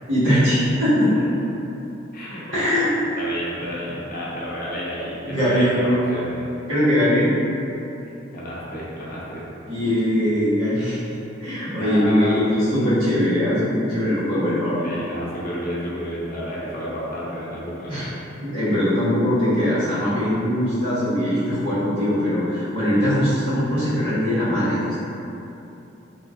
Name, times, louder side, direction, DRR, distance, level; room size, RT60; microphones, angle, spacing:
voice 1, 0.1-1.1 2.5-2.9 5.3-5.8 6.7-7.3 9.7-11.0 11.4-14.9 17.9-18.1 18.4-25.0, equal, 70° right, -12 dB, 1.4 m, -21 dB
voice 2, 2.1-2.8 3.2-6.6 8.3-9.5 11.8-12.5 14.8-18.0, equal, 50° left, -6 dB, 0.7 m, -31 dB
3.2 x 2.8 x 2.5 m, 2.9 s
head